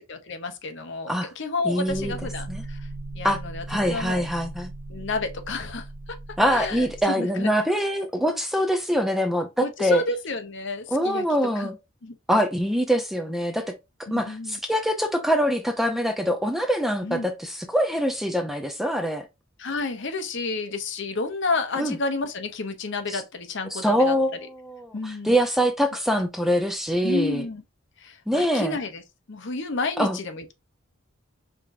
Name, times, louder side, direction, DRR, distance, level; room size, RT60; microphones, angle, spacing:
voice 1, 0.1-2.8 3.1-4.2 4.9-6.2 6.5-6.9 7.1-7.5 9.6-11.2 11.6-11.7 12.0-12.2 14.1-14.6 17.0-17.3 19.6-24.2 24.9-25.3 27.0-27.6 28.0-29.0 29.3-30.5, left 3 dB, 60° left, 0.8 m, -30 dB
voice 2, 1.6-2.1 2.5-2.6 3.2-3.4 3.7-4.7 6.4-10.0 10.9-11.8 12.3-13.6 14.1-19.3 21.8-22.0 23.1-23.2 23.7-27.4 28.3-28.8 30.0-30.2, equal, ahead, 0.6 m, -24 dB
sound 1, 1.9-7.0, right 2 dB, 35° right, 2.0 m, -38 dB
5.0 x 3.6 x 2.6 m
head